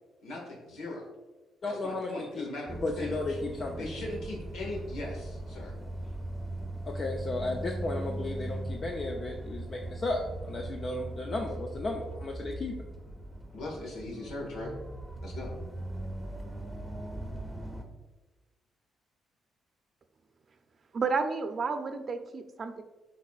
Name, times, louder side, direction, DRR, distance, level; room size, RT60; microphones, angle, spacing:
voice 1, 0.2-1.0 1.6-3.4 3.8-5.7 13.5-14.7 15.2-15.5, left 2 dB, 85° left, 0 dB, 1.7 m, -39 dB
voice 2, 1.6-2.5 2.8-3.9 6.9-12.8, left 2 dB, 45° left, 1 dB, 0.6 m, -34 dB
sound 1, 2.7-17.8, right 1 dB, ahead, 0.9 m, -39 dB
voice 3, 20.9-22.8, right 4 dB, 45° right, 8 dB, 0.6 m, -31 dB
10.5 x 4.1 x 2.4 m, 1.2 s
cardioid pair, 90°, 0 cm